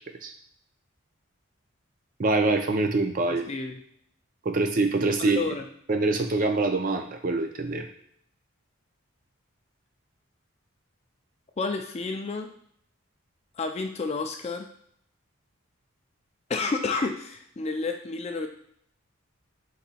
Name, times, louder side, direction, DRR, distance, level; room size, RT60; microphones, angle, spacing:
voice 1, 2.2-3.5 4.5-5.4 5.9-7.9, right 3 dB, 40° right, 5 dB, 0.4 m, -24 dB
voice 2, 3.3-3.8 5.2-5.6 11.6-12.5 13.6-14.7 16.5-18.5, left 4 dB, 30° left, 5 dB, 0.3 m, -30 dB
3.9 x 2.7 x 4.2 m, 0.66 s
head